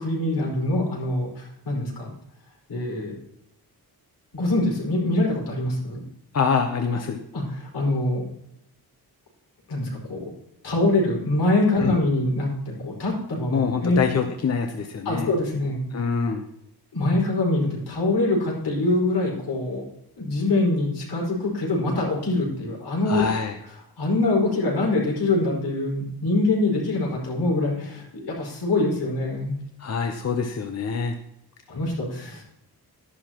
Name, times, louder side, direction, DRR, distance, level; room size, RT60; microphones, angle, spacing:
voice 1, 0.0-2.1 2.7-3.1 4.3-6.0 7.3-8.2 9.7-10.3 10.6-14.0 15.0-15.8 16.9-19.8 20.2-23.3 24.0-29.6 31.7-32.5, left 2 dB, 75° left, -3 dB, 4.9 m, -24 dB
voice 2, 6.3-7.2 11.8-12.0 13.5-15.3 15.9-16.4 23.1-23.6 29.8-31.1, left 5 dB, 40° left, 5 dB, 0.8 m, -25 dB
12.5 x 11.0 x 3.0 m, 0.78 s
wide cardioid pair, 155°, 39 cm